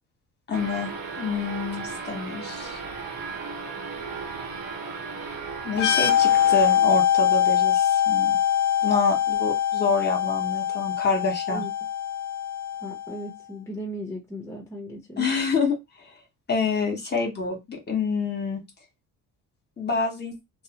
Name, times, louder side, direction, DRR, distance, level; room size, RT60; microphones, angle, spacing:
voice 1, 0.5-0.9 1.2-2.8 5.6-8.4 8.8-11.6 15.2-16.1 16.5-18.6 19.8-20.3, left 4 dB, 30° left, 1.0 m, -27 dB
sound 1, 0.5-7.1, right 4 dB, 75° right, 1.0 m, -36 dB
sound 2, 5.7-13.2, left 10 dB, 45° left, 0.5 m, -23 dB
voice 2, 12.8-15.3, equal, 10° left, 0.6 m, -36 dB
2.7 x 2.1 x 2.8 m
cardioid pair, 120°, 35 cm